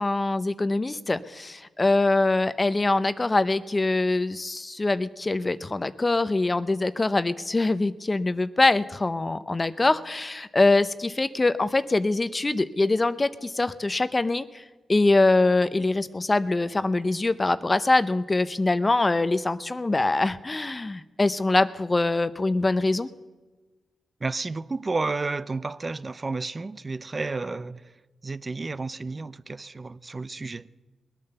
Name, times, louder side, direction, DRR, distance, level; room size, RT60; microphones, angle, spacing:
voice 1, 0.0-14.6 14.9-23.1, left 2 dB, 25° left, 0.7 m, -23 dB
voice 2, 24.2-27.8 28.2-30.7, right 3 dB, 35° right, 0.5 m, -31 dB
20.5 x 8.8 x 6.8 m
cardioid pair, 70°, 0 cm